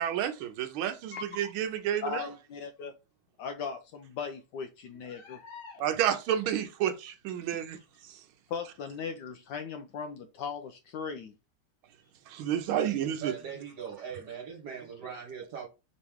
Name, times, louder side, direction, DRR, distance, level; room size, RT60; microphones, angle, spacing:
voice 1, 0.0-2.3 5.8-7.8 8.0-8.2 12.3-13.3, right 10 dB, 90° right, 1.5 m, -30 dB
voice 2, 1.1-1.5 2.0-2.9 3.4-5.8 8.5-11.4, left 6 dB, 75° left, 1.0 m, -38 dB
voice 3, 13.2-15.7, right 7 dB, 60° right, 1.6 m, -40 dB
5.2 x 3.0 x 3.4 m
omnidirectional pair, 2.2 m